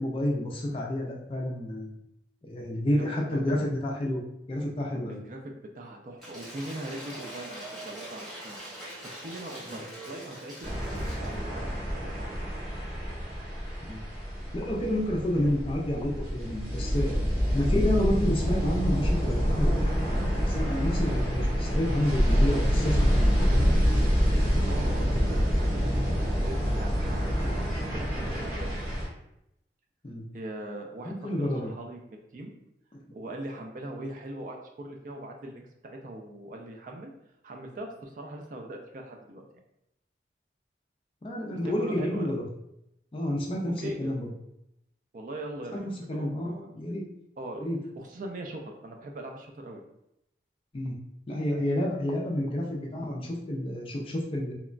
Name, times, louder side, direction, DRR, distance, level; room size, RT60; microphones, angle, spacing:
voice 1, 0.0-2.0 2.4-4.2 4.5-5.2 9.7-9.8 13.9-14.0 14.5-17.1 17.5-20.0 20.4-23.3 30.0-30.2 31.0-31.7 32.9-33.0 41.2-42.4 43.1-44.3 45.7-47.0 47.6-47.8 50.7-51.0 51.3-54.5, left 1 dB, 30° left, -1 dB, 0.4 m, -29 dB
voice 2, 3.0-3.7 5.1-8.6 9.2-12.4 24.4-27.6 27.9-29.0 30.3-32.5 33.1-37.1 37.4-39.5 41.6-42.3 43.8-44.1 45.1-46.7 47.4-47.7 48.0-49.8, right 1 dB, 45° right, 2 dB, 0.3 m, -41 dB
Cheering / Applause / Crowd, 6.2-11.4, right 1 dB, ahead, 0.9 m, -43 dB
sound 1, 10.6-29.1, equal, 75° right, 1.3 m, -27 dB
2.9 x 2.1 x 2.4 m, 0.83 s
head